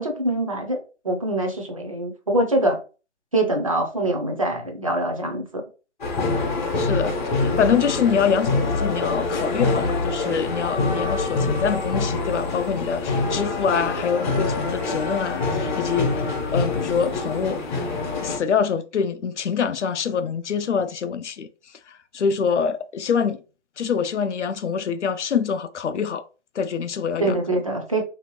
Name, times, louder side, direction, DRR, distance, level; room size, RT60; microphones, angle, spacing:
voice 1, 0.0-2.8 3.3-5.6 27.2-28.0, right 1 dB, 30° right, 0.4 m, -24 dB
sound 1, 6.0-18.4, left 3 dB, 40° left, 0.8 m, -25 dB
voice 2, 6.8-7.1 7.4-16.2 16.5-17.8 18.2-21.5 21.9-23.4 23.8-26.2 26.5-27.4, left 6 dB, 75° left, 0.6 m, -25 dB
3.0 x 2.7 x 2.9 m
hypercardioid pair, 155°, 36 cm